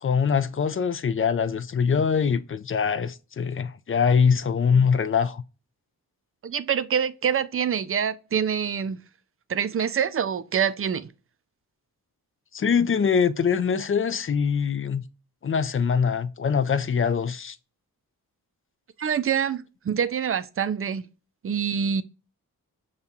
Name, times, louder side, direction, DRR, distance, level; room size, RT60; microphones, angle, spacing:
voice 1, 0.0-5.4 12.5-15.0 15.4-17.6, left 6 dB, 35° left, 0.4 m, -23 dB
voice 2, 6.4-9.0 9.5-11.1 19.0-21.0 21.4-22.0, right 7 dB, 35° right, 0.4 m, -26 dB
6.6 x 2.4 x 2.7 m
cardioid pair, 55°, 39 cm